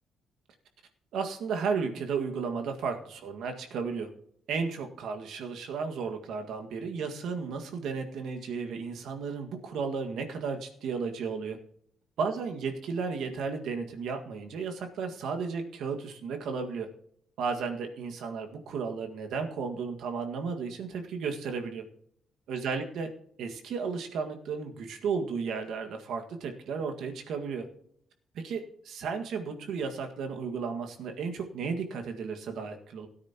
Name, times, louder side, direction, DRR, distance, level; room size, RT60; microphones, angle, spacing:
voice 1, 1.1-4.1 4.5-11.6 12.2-16.9 17.4-21.8 22.5-23.1 23.4-27.7 28.3-33.1, right 5 dB, 75° right, 4 dB, 1.8 m, -34 dB
16.5 x 9.6 x 3.0 m, 0.67 s
cardioid pair, 90°, 0 cm